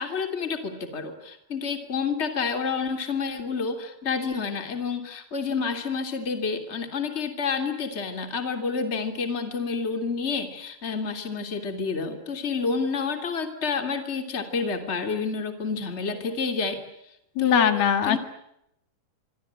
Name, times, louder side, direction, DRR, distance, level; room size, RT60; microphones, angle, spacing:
voice 1, 0.0-16.8 17.4-17.7 18.0-18.2, left 5 dB, 20° left, 7 dB, 2.7 m, -29 dB
voice 2, 17.4-18.2, left 9 dB, 80° left, 9 dB, 3.7 m, -21 dB
25.0 x 25.0 x 8.8 m, 0.80 s
omnidirectional pair, 4.4 m